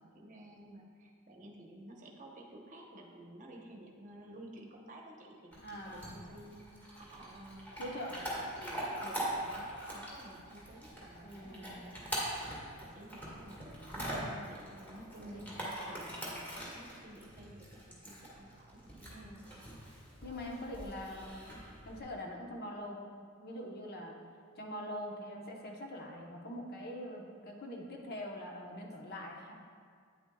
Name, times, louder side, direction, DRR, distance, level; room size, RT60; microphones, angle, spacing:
voice 1, 0.0-6.6 6.9-7.7 8.6-12.4 12.8-15.5 15.9-19.6 20.6-20.9, right 1 dB, 40° right, 0 dB, 0.9 m, -53 dB
Chewing mastication / Dog, 5.5-22.0, right 1 dB, 10° left, 1.8 m, -43 dB
voice 2, 5.6-6.2 7.8-8.2 11.2-11.8 15.2-15.7 19.1-19.5 20.2-21.5 21.8-24.1 24.6-29.5, left 1 dB, 45° left, 0 dB, 1.0 m, -44 dB
9.1 x 7.8 x 2.3 m, 2.1 s
head